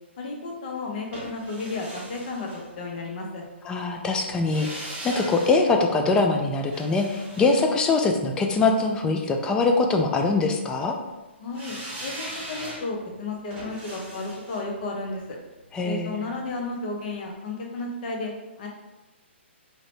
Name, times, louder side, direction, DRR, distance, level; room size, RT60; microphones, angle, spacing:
voice 1, 0.2-2.5 2.8-3.4 11.4-15.2 15.8-18.3 18.6-18.7, left 3 dB, 45° left, 0 dB, 0.8 m, -33 dB
sound 1, 1.1-3.2 4.3-8.5 11.5-16.5 16.8-16.9, right 1 dB, 20° right, 0.9 m, -40 dB
voice 2, 3.6-11.0 15.7-16.3, left 3 dB, 10° left, 3 dB, 0.3 m, -23 dB
2.8 x 2.6 x 3.2 m, 1.1 s
hypercardioid pair, 140°, 7 cm